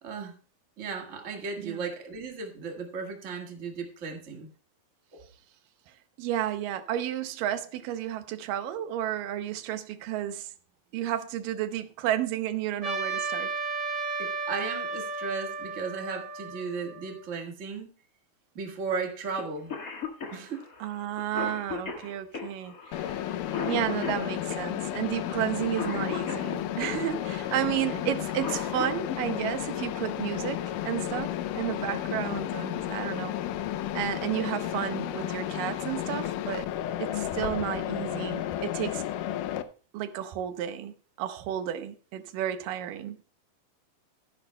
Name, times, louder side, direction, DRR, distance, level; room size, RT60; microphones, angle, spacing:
voice 1, 0.0-0.4 0.8-4.5 5.1-5.3 14.2-17.9 18.5-19.7 20.3-20.6 27.8-28.0, right 4 dB, 50° right, 0.8 m, -35 dB
voice 2, 6.2-10.5 10.9-13.5 20.8-23.2 23.7-33.3 33.9-36.7 37.0-39.0 39.9-43.2, right 11 dB, 75° right, 2.3 m, -32 dB
Trumpet, 12.8-17.3, right 4 dB, 30° right, 1.5 m, -34 dB
Cough, 19.4-19.5 19.7-27.0 28.1-29.2 30.8-30.9 32.0-32.2 32.7-32.8 33.2-33.6, left 5 dB, 60° left, 0.9 m, -37 dB
Mechanisms, 22.9-39.6, left 12 dB, 75° left, 2.0 m, -32 dB
14.5 x 11.0 x 2.2 m
omnidirectional pair, 4.2 m